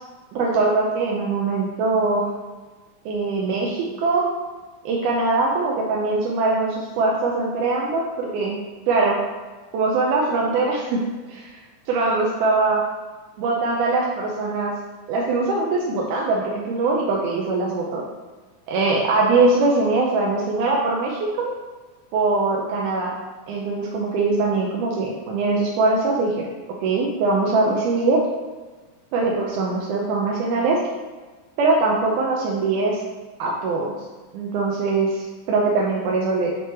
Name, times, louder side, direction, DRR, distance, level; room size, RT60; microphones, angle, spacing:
voice 1, 0.3-2.3 3.1-4.3 4.9-8.6 8.9-9.2 9.7-11.0 11.3-11.6 11.9-12.8 13.4-14.7 15.1-18.0 18.7-21.5 22.1-23.1 23.5-26.5 26.8-28.2 29.1-30.8 31.6-33.0 33.4-34.0 34.3-36.5, right 3 dB, 90° right, -2 dB, 2.2 m, -22 dB
6.9 x 3.4 x 4.2 m, 1.3 s
omnidirectional pair, 3.5 m